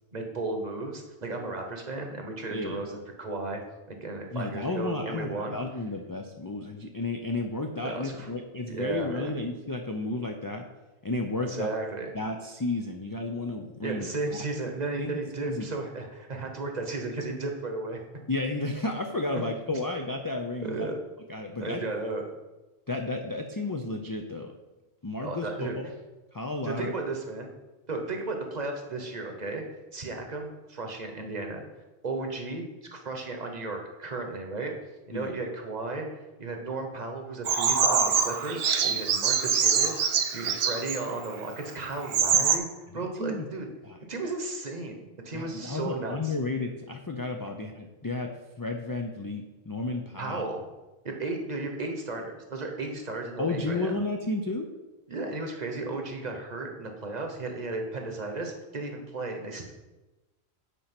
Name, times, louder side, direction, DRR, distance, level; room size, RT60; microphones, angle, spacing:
voice 1, 0.1-3.6 3.9-5.6 7.8-8.3 8.7-9.3 11.4-12.1 13.8-18.0 20.6-21.0 21.6-22.3 25.2-25.8 26.6-27.5 27.9-29.6 29.9-31.6 32.0-32.6 32.9-34.7 35.1-36.1 36.4-42.7 42.9-43.7 44.1-46.3 50.2-50.6 51.0-54.0 55.1-59.7, right 3 dB, 40° right, 3 dB, 1.1 m, -34 dB
voice 2, 4.3-10.7 11.0-11.8 12.1-14.1 15.0-15.1 15.4-15.7 18.3-20.9 21.3-21.8 22.9-24.5 25.0-25.9 26.3-26.9 35.1-35.4 42.3-42.5 42.9-43.5 43.8-44.0 45.3-50.5 53.4-54.7, left 2 dB, 30° left, 3 dB, 0.4 m, -32 dB
Bird vocalization bird call bird song, 37.5-41.0 41.7-41.8 42.0-42.6, right 6 dB, 65° right, 0.9 m, -24 dB
8.2 x 4.3 x 5.9 m, 1.1 s
omnidirectional pair, 1.1 m